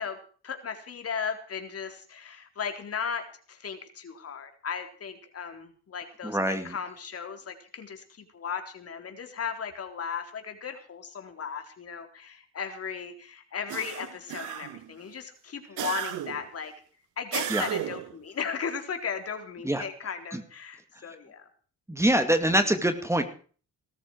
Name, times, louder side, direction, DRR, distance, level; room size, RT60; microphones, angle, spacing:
voice 1, 0.0-16.7 17.2-21.5, left 6 dB, 50° left, 6 dB, 4.0 m, -36 dB
voice 2, 6.2-6.7 17.5-17.6 19.6-19.9 20.3-20.4 21.9-23.2, right 1 dB, 10° right, 8 dB, 2.4 m, -24 dB
sound 1, 13.7-14.9 15.8-16.5 17.3-18.1, right 12 dB, 85° right, 1.7 m, -34 dB
19.0 x 14.0 x 4.7 m, 0.42 s
cardioid pair, 90°, 30 cm